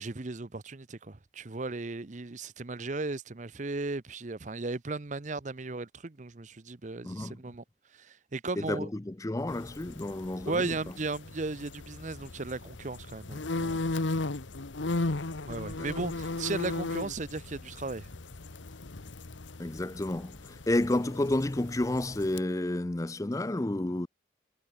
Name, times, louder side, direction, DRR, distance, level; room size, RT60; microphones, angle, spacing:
voice 1, 0.0-7.6 7.9-8.9 10.4-13.8 15.4-18.1, right 3 dB, 40° right, 0.8 m, -36 dB
voice 2, 7.0-7.4 8.6-10.7 15.8-15.9 19.6-24.1, left 1 dB, 15° left, 0.5 m, -30 dB
sound 1, 9.5-22.4, left 2 dB, 85° left, 1.2 m, -37 dB
head